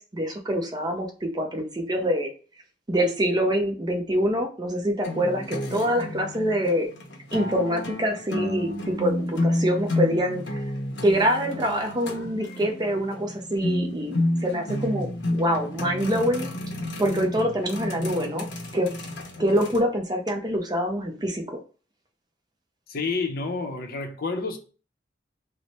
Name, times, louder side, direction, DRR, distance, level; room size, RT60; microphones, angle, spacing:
voice 1, 0.0-2.3 2.9-6.9 7.3-10.7 11.0-15.1 15.3-16.5 17.0-18.5 18.7-18.9 19.4-21.6, equal, 25° right, 0.5 m, -25 dB
sound 1, 5.0-19.8, left 1 dB, 85° left, 0.7 m, -30 dB
voice 2, 22.9-24.6, left 4 dB, 55° left, 0.6 m, -29 dB
3.2 x 2.0 x 4.0 m
head